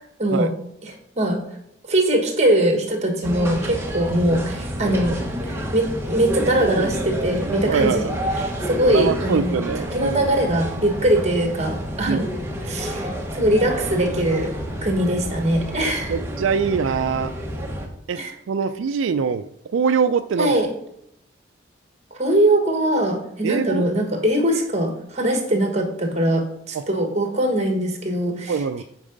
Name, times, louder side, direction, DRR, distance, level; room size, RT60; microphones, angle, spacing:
voice 1, 0.2-0.5 0.8-1.4 1.9-8.0 8.6-9.6 9.9-12.3 12.6-14.5 14.8-16.1 18.1-18.3 20.4-20.7 22.1-28.6, right 1 dB, 35° right, 4 dB, 1.4 m, -21 dB
sound 1, 3.2-17.9, equal, 15° right, 1.0 m, -29 dB
voice 2, 7.6-8.2 8.9-10.4 12.1-12.3 16.1-17.3 18.1-19.5 19.7-20.6 23.4-23.9 26.7-26.8 28.5-28.8, right 6 dB, 85° right, 10 dB, 0.4 m, -23 dB
8.6 x 4.7 x 5.2 m, 0.74 s
head